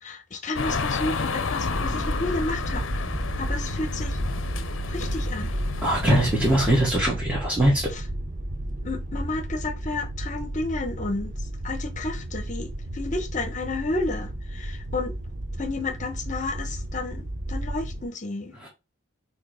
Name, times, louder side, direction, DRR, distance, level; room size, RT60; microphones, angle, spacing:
voice 1, 0.0-3.0 3.4-4.2 4.9-5.5 7.9-8.0 8.8-11.3 11.6-15.2 15.6-18.5, left 2 dB, 35° left, 1.1 m, -31 dB
sound 1, 0.5-6.8, left 4 dB, 60° left, 0.8 m, -31 dB
sound 2, 1.7-18.0, right 1 dB, 35° right, 0.8 m, -32 dB
voice 2, 5.8-7.9 18.6-18.7, right 1 dB, 10° right, 1.6 m, -22 dB
6.3 x 3.1 x 5.1 m
head